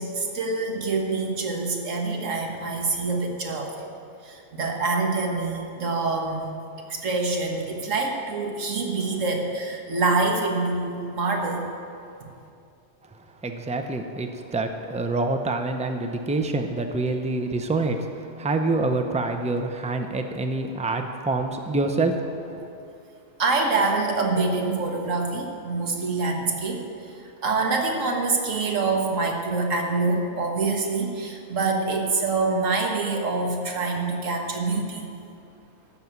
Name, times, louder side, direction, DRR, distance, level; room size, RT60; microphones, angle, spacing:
voice 1, 0.0-3.9 4.2-6.4 6.9-11.7 12.2-12.3 23.4-26.8 27.4-35.1, right 3 dB, 80° right, 2 dB, 1.7 m, -25 dB
voice 2, 13.4-22.1 22.6-22.7, right 2 dB, 10° right, 5 dB, 0.3 m, -26 dB
12.5 x 6.0 x 8.0 m, 2.5 s
omnidirectional pair, 1.3 m